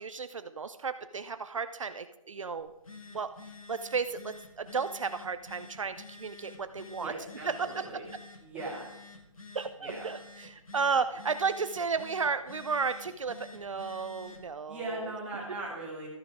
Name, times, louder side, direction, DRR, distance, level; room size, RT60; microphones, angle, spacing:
voice 1, 0.0-2.7 3.1-3.3 3.7-7.1 7.4-7.9 9.5-15.1, right 5 dB, 65° right, 11 dB, 0.6 m, -33 dB
Telephone, 2.6-14.5, left 3 dB, 90° left, 1.9 m, -50 dB
voice 2, 6.9-8.0 8.4-8.8 9.8-10.1 14.7-16.1, right 2 dB, 5° right, -6 dB, 2.4 m, -39 dB
13.5 x 9.5 x 3.6 m, 0.91 s
figure-of-eight pair, 160°, 17 cm